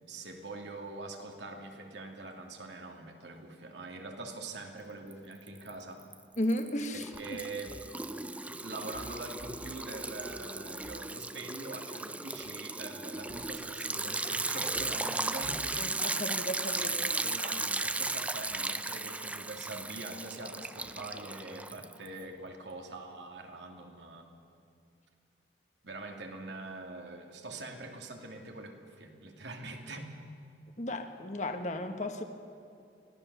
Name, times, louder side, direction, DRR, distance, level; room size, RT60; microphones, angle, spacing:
voice 1, 0.0-6.1 6.9-7.7 8.5-15.6 16.8-24.3 25.8-30.1, right 2 dB, 75° right, 2 dB, 2.6 m, -44 dB
Liquid, 5.1-5.7 6.0-22.2, right 2 dB, 5° right, 0.4 m, -36 dB
voice 2, 6.4-7.4 15.8-17.1 30.8-32.2, left 1 dB, 40° left, 6 dB, 1.5 m, -34 dB
24.5 x 16.5 x 6.8 m, 2.6 s
head